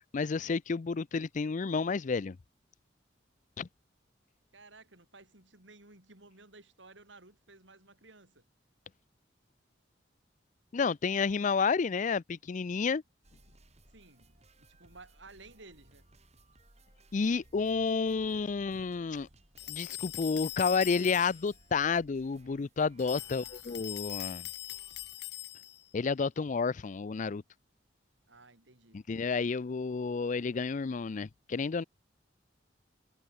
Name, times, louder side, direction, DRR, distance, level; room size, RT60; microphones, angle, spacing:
voice 1, 0.1-2.4 3.6-3.7 10.7-13.0 17.1-19.3 19.7-24.5 25.9-27.4 28.9-31.8, left 5 dB, 45° left, 0.4 m, -30 dB
voice 2, 4.5-8.5 13.9-16.1 23.0-24.0 28.3-29.0, right 3 dB, 85° right, 6.6 m, -56 dB
sound 1, 13.2-25.2, right 1 dB, 35° right, 7.7 m, -62 dB
sound 2, 19.6-21.5 23.0-25.9, left 15 dB, 60° left, 0.7 m, -41 dB
head